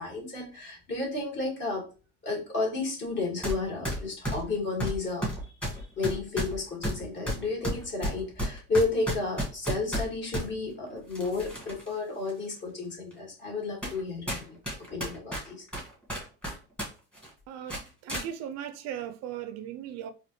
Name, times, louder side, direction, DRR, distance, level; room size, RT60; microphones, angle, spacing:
voice 1, 0.0-1.8 2.2-5.3 5.7-14.6 14.9-15.6, left 3 dB, 35° left, 1.8 m, -32 dB
sound 1, 3.4-3.6 3.8-10.5 11.1-11.9 12.3-12.4 13.1-13.2 13.8-14.0 14.3-16.9 17.1-17.3 17.7-18.3, equal, 5° left, 1.4 m, -32 dB
voice 2, 17.5-20.1, right 10 dB, 55° right, 0.4 m, -38 dB
4.1 x 2.5 x 3.0 m
cardioid pair, 120°, 32 cm